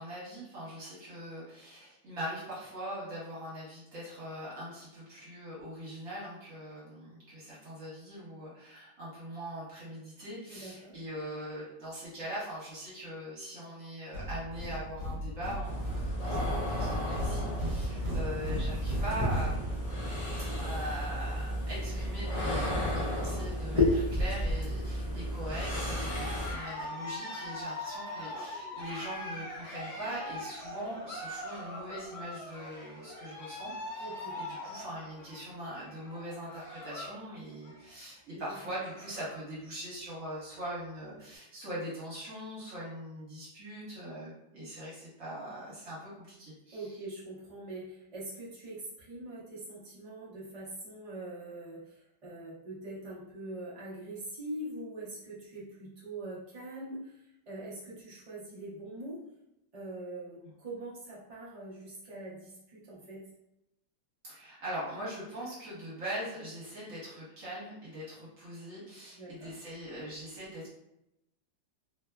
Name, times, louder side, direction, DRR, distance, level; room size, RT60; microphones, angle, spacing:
voice 1, 0.0-19.7 20.6-47.0 64.2-70.7, equal, 50° right, -8 dB, 1.4 m, -41 dB
voice 2, 10.5-10.9 34.0-34.4 38.5-38.6 46.7-59.2 59.7-63.2 69.2-69.5, right 2 dB, 85° right, -8 dB, 0.3 m, -43 dB
sound 1, 14.1-20.1, equal, 70° right, 1.2 m, -36 dB
sound 2, 15.6-26.5, left 1 dB, 45° left, 0.4 m, -32 dB
Cheering, 25.9-37.2 37.5-37.9 38.3-38.4 38.6-39.5, left 1 dB, 70° left, 1.1 m, -42 dB
3.0 x 2.2 x 2.2 m, 0.86 s
omnidirectional pair, 2.0 m